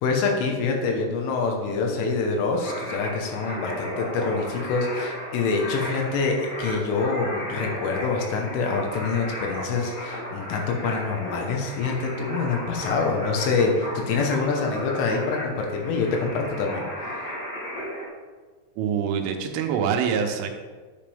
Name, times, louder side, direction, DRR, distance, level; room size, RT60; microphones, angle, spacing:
voice 1, 0.0-16.9 17.1-17.4, left 4 dB, 80° left, 2 dB, 3.7 m, -26 dB
sound 1, 2.6-18.1, equal, 30° left, 2.5 m, -34 dB
voice 2, 18.8-20.5, right 7 dB, 80° right, 5 dB, 3.3 m, -25 dB
10.0 x 8.5 x 3.5 m, 1.5 s
omnidirectional pair, 5.7 m